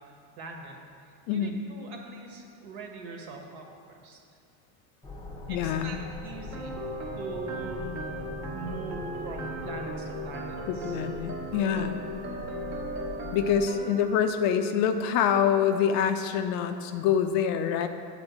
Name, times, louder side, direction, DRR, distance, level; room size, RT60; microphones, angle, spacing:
voice 1, 0.4-4.2 5.5-6.8 7.2-8.1 8.5-11.0, right 3 dB, 60° right, 2 dB, 1.5 m, -42 dB
sound 1, 5.0-13.7, left 2 dB, 10° left, 0.8 m, -41 dB
voice 2, 5.5-6.0 10.7-12.0 13.3-17.9, left 8 dB, 50° left, 8 dB, 0.5 m, -26 dB
sound 2, 6.5-14.1, right 1 dB, 35° right, 1.2 m, -37 dB
8.0 x 4.4 x 7.2 m, 2.4 s
supercardioid pair, 130°, 45 cm